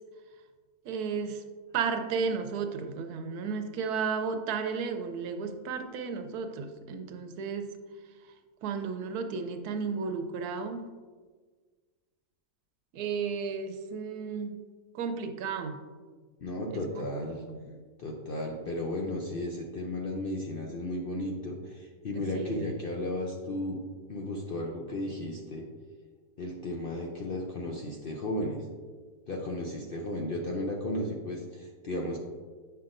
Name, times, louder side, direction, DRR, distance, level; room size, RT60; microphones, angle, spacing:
voice 1, 0.8-1.4 1.7-7.7 8.6-10.9 12.9-14.6 14.9-15.8 16.7-17.1 17.4-17.8 22.1-22.7, right 5 dB, 85° right, 7 dB, 1.1 m, -33 dB
voice 2, 16.4-17.4 18.0-23.8 24.1-25.7 26.4-28.6 29.3-32.2, left 1 dB, 55° left, 0 dB, 0.6 m, -34 dB
8.3 x 5.7 x 2.5 m, 1.5 s
omnidirectional pair, 1.6 m